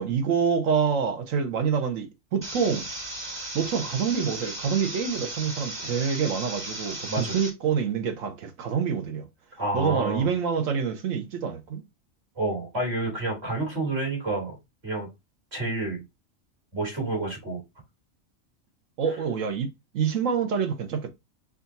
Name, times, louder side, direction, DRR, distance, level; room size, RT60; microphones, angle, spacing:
voice 1, 0.0-2.9 3.5-9.3 9.7-11.8 19.0-21.1, right 6 dB, 80° right, 1.3 m, -27 dB
sound 1, 2.4-7.5, right 1 dB, 20° right, 1.0 m, -36 dB
voice 2, 7.1-7.4 9.6-10.3 12.3-14.6 14.8-15.1 15.5-16.0 16.7-17.6, right 2 dB, 55° right, 3.1 m, -29 dB
4.8 x 2.6 x 4.0 m
omnidirectional pair, 1.3 m